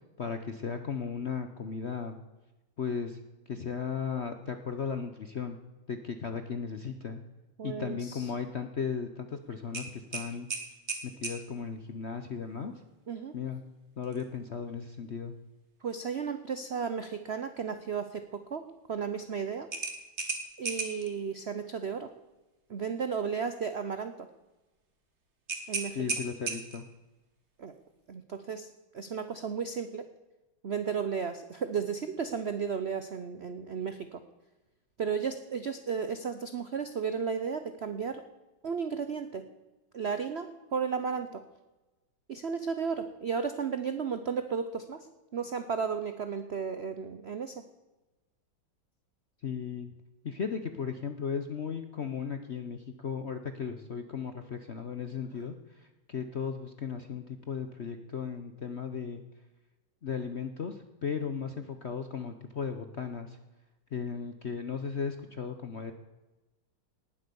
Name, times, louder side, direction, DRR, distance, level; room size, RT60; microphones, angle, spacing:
voice 1, 0.2-2.2 2.8-3.2 3.5-5.6 5.9-7.2 7.6-10.5 11.0-12.7 13.3-13.6 14.0-15.4 25.9-26.9 49.4-49.9 50.2-59.2 60.0-63.4 63.9-65.9, left 6 dB, 55° left, 8 dB, 0.7 m, -36 dB
voice 2, 7.6-8.3 13.1-13.3 15.8-19.7 20.6-22.1 22.7-24.3 25.7-26.0 27.6-27.7 28.1-28.7 28.9-30.0 30.6-34.2 35.0-38.2 38.6-39.4 39.9-41.4 42.3-45.0 45.3-47.5, right 6 dB, 70° right, 9 dB, 0.6 m, -34 dB
sound 1, 9.7-11.4 14.0-14.3 14.7-14.8 19.7-21.1 25.5-26.9, right 3 dB, 35° right, 1.9 m, -35 dB
18.5 x 8.0 x 6.9 m, 1.1 s
omnidirectional pair, 2.2 m